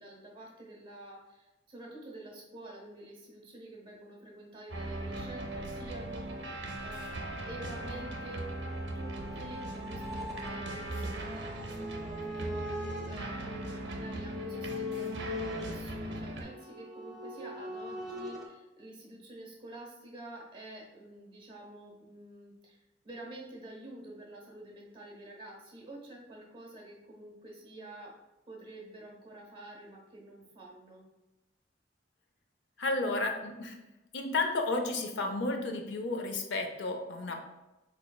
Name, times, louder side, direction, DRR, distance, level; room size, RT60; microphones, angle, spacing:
voice 1, 0.0-7.2 7.5-8.5 8.9-31.0, right 1 dB, 30° right, -3 dB, 0.9 m, -49 dB
sound 1, 4.7-16.4, right 1 dB, 75° right, 0.5 m, -39 dB
sound 2, 7.8-18.5, left 1 dB, ahead, 0.6 m, -42 dB
voice 2, 32.8-33.8 34.1-37.3, left 2 dB, 75° left, 4 dB, 0.5 m, -32 dB
4.1 x 3.1 x 2.2 m, 1.0 s
head